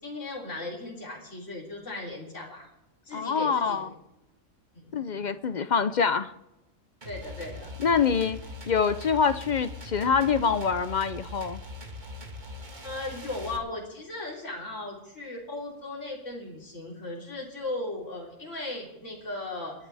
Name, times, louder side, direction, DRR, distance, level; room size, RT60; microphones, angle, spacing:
voice 1, 0.0-2.7 3.1-3.9 4.7-5.0 7.0-7.7 12.8-19.7, left 2 dB, 70° left, -3 dB, 3.7 m, -37 dB
voice 2, 3.1-3.9 4.9-6.3 7.8-11.6, left 6 dB, 50° left, 12 dB, 0.5 m, -25 dB
sound 1, 7.0-13.6, left 2 dB, 35° right, 1.7 m, -41 dB
28.5 x 9.7 x 3.4 m, 0.91 s
omnidirectional pair, 1.4 m